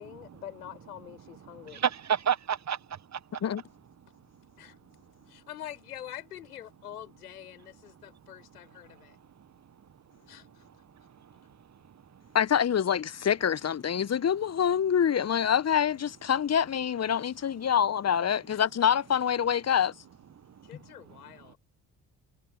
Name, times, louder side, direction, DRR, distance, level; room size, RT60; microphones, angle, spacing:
voice 1, 0.0-1.8 4.6-4.8 5.3-9.2 10.3-10.7 18.5-18.7 20.6-21.6, left 11 dB, 85° left, 7.4 m, -45 dB
voice 2, 1.4-3.4 4.6-4.8 9.1-9.7 10.1-10.3 10.8-12.4 20.4-20.7, right 8 dB, 35° right, 1.4 m, -34 dB
voice 3, 12.3-19.9, left 8 dB, 35° left, 1.1 m, -26 dB
figure-of-eight pair, 45°, 45 cm